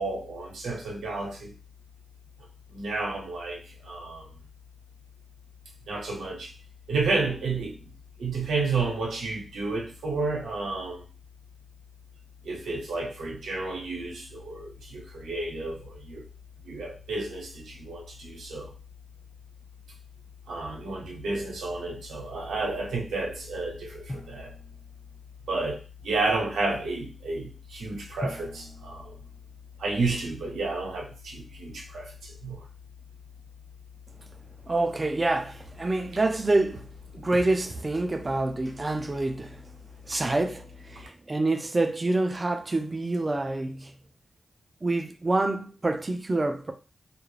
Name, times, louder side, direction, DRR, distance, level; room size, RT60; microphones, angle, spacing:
voice 1, 0.0-1.5 2.7-4.4 5.9-6.5 6.9-7.9 8.2-11.0 12.4-16.3 16.6-18.7 20.5-24.5 25.5-29.2 29.8-32.6, right 3 dB, 90° right, 0.7 m, -31 dB
Drum, 24.1-25.6 28.2-30.4, left 1 dB, 20° left, 1.1 m, -42 dB
voice 2, 34.7-36.9 37.1-39.7 40.0-44.0 44.8-46.7, right 2 dB, 35° right, 0.4 m, -27 dB
2.3 x 2.1 x 3.1 m
cardioid pair, 55°, 0 cm